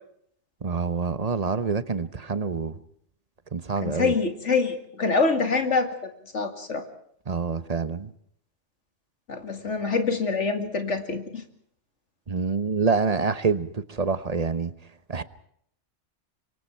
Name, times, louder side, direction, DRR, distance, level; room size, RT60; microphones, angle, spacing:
voice 1, 0.6-2.7 3.5-4.1 7.3-8.1 12.3-14.7 15.1-15.2, right 5 dB, 35° right, 13 dB, 1.1 m, -26 dB
voice 2, 3.8-6.8 9.3-11.4, left 4 dB, 85° left, 7 dB, 2.6 m, -25 dB
27.5 x 23.5 x 4.6 m, 0.68 s
omnidirectional pair, 1.2 m